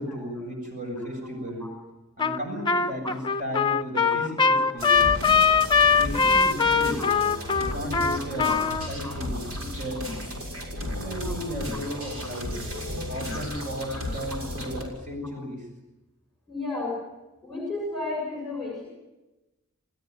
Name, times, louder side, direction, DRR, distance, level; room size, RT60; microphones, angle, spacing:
voice 1, 0.0-1.7 2.2-5.1 5.9-7.1 7.6-8.6 8.9-10.1 10.4-12.5 13.1-15.7, equal, 35° right, 3 dB, 7.4 m, -34 dB
Trumpet, 2.2-2.4 2.7-8.9, left 5 dB, 20° left, 0.8 m, -21 dB
sound 1, 4.8-14.8, left 1 dB, 80° right, 6.7 m, -34 dB
voice 2, 8.2-8.7 9.0-9.1 11.2-11.6 11.9-12.1 13.3-13.4 13.9-14.0 14.4-14.5 16.5-17.0 17.4-18.9, left 2 dB, ahead, -1 dB, 6.8 m, -34 dB
29.5 x 17.0 x 9.6 m, 1.0 s
head